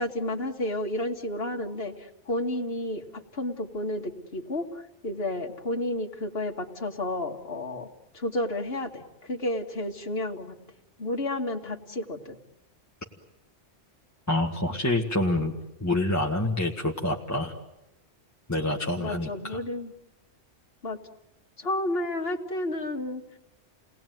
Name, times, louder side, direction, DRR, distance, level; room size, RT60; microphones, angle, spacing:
voice 1, 0.0-7.9 8.1-10.5 11.0-12.4 18.9-19.9 20.8-21.0 21.6-23.2, left 1 dB, 55° left, 3 dB, 2.3 m, -31 dB
voice 2, 14.3-15.5 15.8-17.5 18.5-19.6, left 1 dB, 15° left, 0 dB, 1.8 m, -27 dB
29.5 x 20.0 x 9.3 m, 0.95 s
omnidirectional pair, 1.2 m